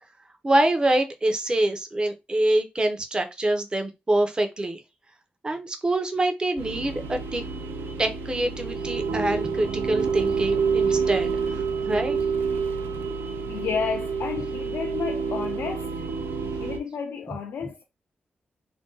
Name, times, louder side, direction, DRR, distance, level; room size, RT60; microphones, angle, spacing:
voice 1, 0.4-4.8 5.4-7.4 8.0-11.3 11.5-12.2, right 1 dB, 25° right, 0.6 m, -25 dB
sound 1, 6.6-16.8, right 5 dB, 80° right, 0.4 m, -28 dB
voice 2, 13.5-15.9 16.6-17.8, left 6 dB, 90° left, 0.4 m, -31 dB
2.5 x 2.1 x 3.8 m
wide cardioid pair, 105°, 4 cm